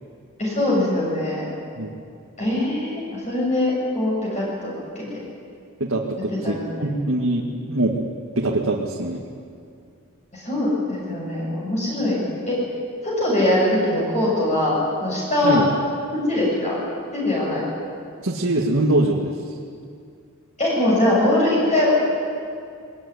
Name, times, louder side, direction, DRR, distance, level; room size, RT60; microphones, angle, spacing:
voice 1, 0.4-1.5 2.4-5.1 6.4-6.8 10.3-12.2 12.5-12.6 13.0-15.6 16.1-16.8 17.1-17.6 20.6-21.9, left 1 dB, 35° left, -5 dB, 7.5 m, -22 dB
voice 2, 5.8-8.0 8.4-9.2 15.4-15.7 18.2-19.3, right 1 dB, 65° right, -2 dB, 2.1 m, -23 dB
23.0 x 20.0 x 9.9 m, 2.3 s
head